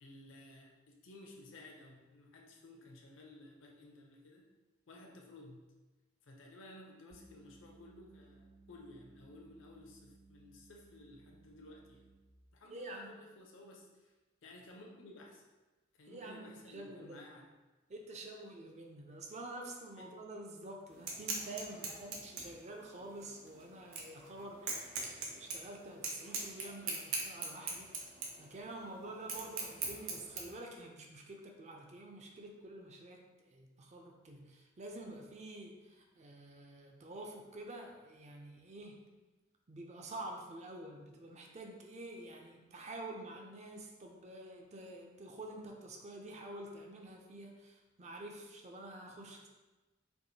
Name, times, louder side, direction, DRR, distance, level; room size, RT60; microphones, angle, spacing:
voice 1, 0.0-4.5 4.9-5.6 6.3-12.0 12.5-13.8 14.4-15.4 16.0-17.5, left 1 dB, 65° left, 0 dB, 0.6 m, -55 dB
sound 1, 7.1-12.4, right 3 dB, 65° right, 1.1 m, -62 dB
voice 2, 12.7-13.3 16.1-17.2 17.9-39.0 39.7-49.5, right 2 dB, 35° right, 1 dB, 0.4 m, -48 dB
sound 2, 20.9-30.4, right 4 dB, 85° right, 0.7 m, -41 dB
4.4 x 2.4 x 2.7 m, 1.1 s
head